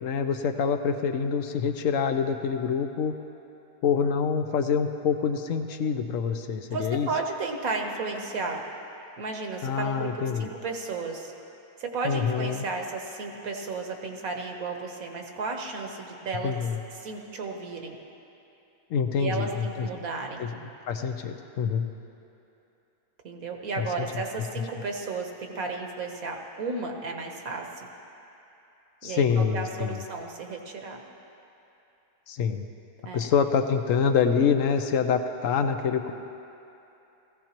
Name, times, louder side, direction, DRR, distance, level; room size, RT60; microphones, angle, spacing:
voice 1, 0.0-3.2 3.8-7.1 9.6-10.5 12.0-12.6 16.4-16.8 18.9-19.9 20.4-20.5 20.9-21.9 23.8-24.1 24.6-24.7 29.0-30.0 32.3-32.7 33.1-36.1, left 6 dB, 65° left, 7 dB, 0.9 m, -26 dB
voice 2, 6.7-8.6 9.2-11.3 11.8-16.5 16.9-18.0 19.2-20.5 23.2-27.9 29.0-31.0 33.0-33.3, right 3 dB, 65° right, 3 dB, 1.5 m, -33 dB
18.0 x 15.5 x 3.0 m, 2.9 s
omnidirectional pair, 1.7 m